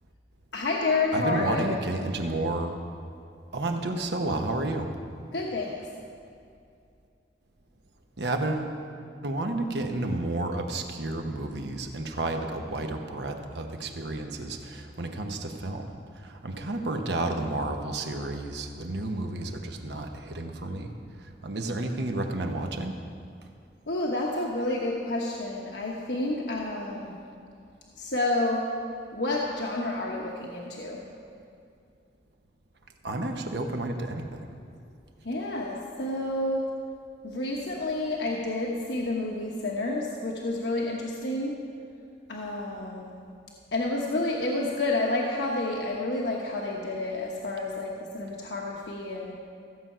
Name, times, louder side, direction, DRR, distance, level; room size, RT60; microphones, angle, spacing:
voice 1, 0.5-1.7 5.3-5.8 23.9-27.1 28.0-28.6 29.1-31.0 35.2-36.6 37.2-41.5 42.3-43.2 43.7-49.3, left 2 dB, 75° left, -2 dB, 1.1 m, -29 dB
voice 2, 1.1-2.8 3.5-4.9 8.2-8.8 9.2-20.9 21.2-22.9 33.0-34.5, right 2 dB, 70° right, 4 dB, 1.0 m, -31 dB
14.5 x 7.6 x 5.6 m, 2.5 s
head